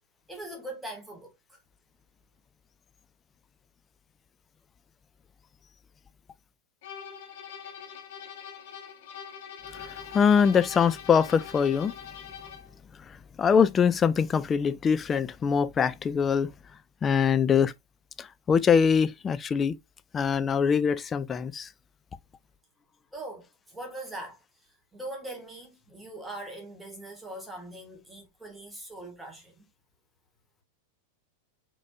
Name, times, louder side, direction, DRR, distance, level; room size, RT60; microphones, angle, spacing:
voice 1, 0.3-1.6 23.1-29.7, right 1 dB, 5° right, 1.9 m, -41 dB
sound 1, 6.8-12.8, left 8 dB, 50° left, 0.9 m, -43 dB
voice 2, 9.7-11.9 13.1-16.5 17.0-17.7 18.2-19.8 20.1-21.7, left 6 dB, 20° left, 0.3 m, -23 dB
4.5 x 4.1 x 2.4 m
figure-of-eight pair, 90°, 0 cm